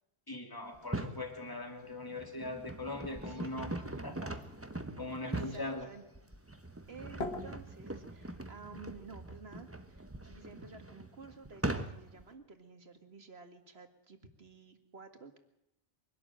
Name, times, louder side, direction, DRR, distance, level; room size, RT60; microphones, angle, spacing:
voice 1, 0.3-3.7 4.0-4.3 5.0-5.8, left 2 dB, 20° left, 4 dB, 2.7 m, -41 dB
sound 1, 0.7-1.2 1.9-12.2, right 2 dB, 15° right, 1.3 m, -41 dB
sound 2, 2.8-8.6, left 2 dB, 85° left, 1.8 m, -47 dB
voice 2, 3.2-3.8 5.3-6.0 6.9-15.4, right 4 dB, 85° right, 7 dB, 2.3 m, -52 dB
24.0 x 12.0 x 9.0 m, 0.86 s
omnidirectional pair, 1.0 m